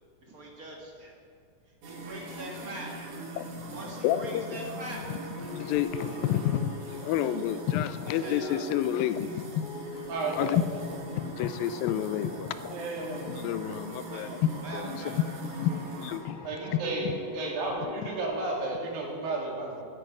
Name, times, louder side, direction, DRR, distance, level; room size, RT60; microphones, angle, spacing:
voice 1, 0.2-1.2 1.8-3.1 3.7-5.2 8.2-8.6 14.1-14.3 14.6-15.2, right 1 dB, 40° right, -1 dB, 1.3 m, -42 dB
sound 1, 1.8-16.2, right 1 dB, 60° right, 2.7 m, -42 dB
voice 2, 3.4-4.6 5.1-5.2 5.5-6.7 7.0-9.7 10.3-10.6 11.1-17.2, left 11 dB, 85° left, 12 dB, 2.3 m, -30 dB
sound 2, 4.9-18.6, equal, 50° left, 2.2 m, -44 dB
voice 3, 10.1-10.6 12.7-13.3 16.4-17.1 17.3-19.9, right 3 dB, 75° right, -1 dB, 4.0 m, -33 dB
15.0 x 10.0 x 5.0 m, 2.3 s
omnidirectional pair, 4.1 m